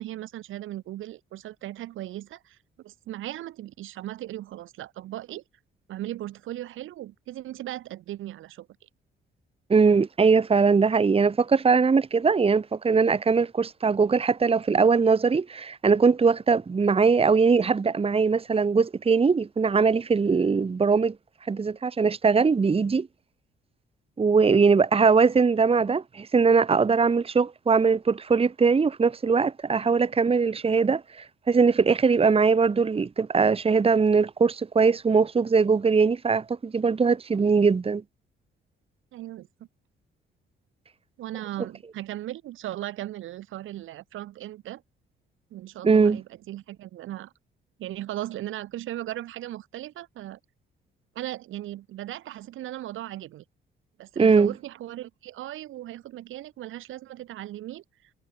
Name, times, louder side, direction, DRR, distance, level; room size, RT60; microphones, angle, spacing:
voice 1, 0.0-5.4 5.9-8.7 39.1-39.5 41.2-44.8 45.5-47.3 47.8-50.4 51.2-53.4 54.0-57.8, right 14 dB, 85° right, 3.6 m, -37 dB
voice 2, 9.7-21.1 21.5-23.1 24.2-38.0 45.8-46.2 54.2-54.5, right 5 dB, 30° right, 1.5 m, -21 dB
cardioid pair, 90°, 20 cm